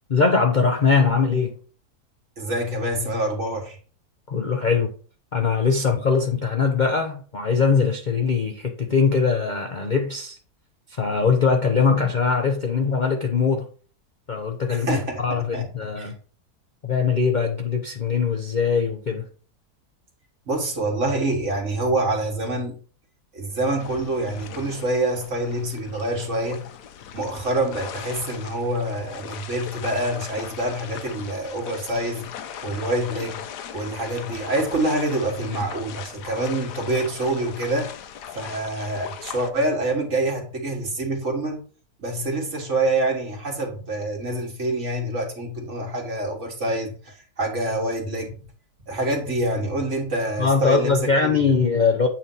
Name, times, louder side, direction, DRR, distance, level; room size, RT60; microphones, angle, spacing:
voice 1, 0.1-1.6 4.3-4.9 5.3-10.4 10.9-13.7 14.3-16.1 16.8-19.3 50.4-52.1, left 5 dB, 45° left, 0.6 m, -21 dB
voice 2, 2.4-3.8 14.7-15.7 16.0-16.1 20.5-22.8 23.3-26.6 27.1-32.3 32.6-33.4 33.7-37.9 38.3-41.6 42.0-48.3 48.9-51.4, right 1 dB, 45° right, 1.9 m, -26 dB
sound 1, 23.7-39.5, left 9 dB, 85° left, 1.3 m, -39 dB
8.5 x 2.9 x 5.4 m
omnidirectional pair, 1.7 m